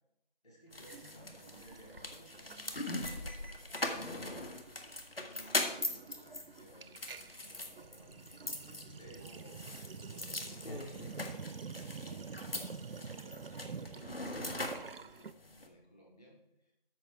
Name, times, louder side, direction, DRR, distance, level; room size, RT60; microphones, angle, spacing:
voice 1, 0.4-4.4 4.9-11.2 11.9-14.3 15.0-16.7, right 1 dB, 45° left, -3 dB, 4.0 m, -58 dB
sound 1, 0.7-15.7, left 1 dB, 75° left, 1.7 m, -41 dB
Sink (filling or washing), 0.9-3.1 3.3-3.6 3.9-15.3, right 5 dB, 75° right, 0.5 m, -48 dB
13.0 x 6.6 x 4.6 m, 0.83 s
figure-of-eight pair, 175°, 29 cm